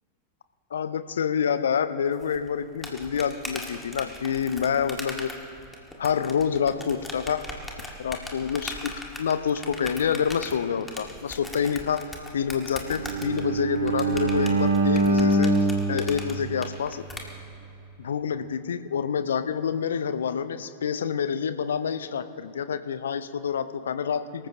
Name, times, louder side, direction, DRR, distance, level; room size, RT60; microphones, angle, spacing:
voice 1, 0.7-5.3 6.0-7.5 8.0-12.1 12.3-15.5 15.9-17.0 18.0-24.5, left 7 dB, 65° left, 12 dB, 0.6 m, -27 dB
sound 1, 2.2-17.2, left 2 dB, 10° left, 1.9 m, -39 dB
Bowed string instrument, 12.8-17.0, right 2 dB, 75° right, 2.8 m, -24 dB
24.5 x 14.5 x 2.9 m, 2.9 s
figure-of-eight pair, 90°, 0 cm